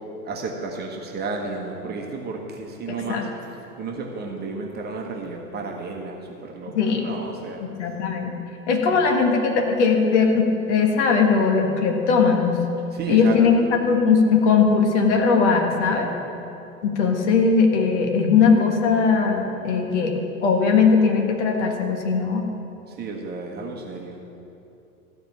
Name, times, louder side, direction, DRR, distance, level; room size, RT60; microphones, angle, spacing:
voice 1, 0.2-3.2 3.8-7.6 8.9-9.0 12.9-13.6 22.9-24.2, right 3 dB, 20° right, 0 dB, 1.3 m, -32 dB
voice 2, 2.9-3.2 6.7-7.1 7.8-8.3 8.7-12.6 13.1-16.1 16.8-22.5, left 5 dB, 50° left, 2 dB, 1.6 m, -19 dB
14.5 x 5.1 x 7.3 m, 2.8 s
figure-of-eight pair, 90°, 44 cm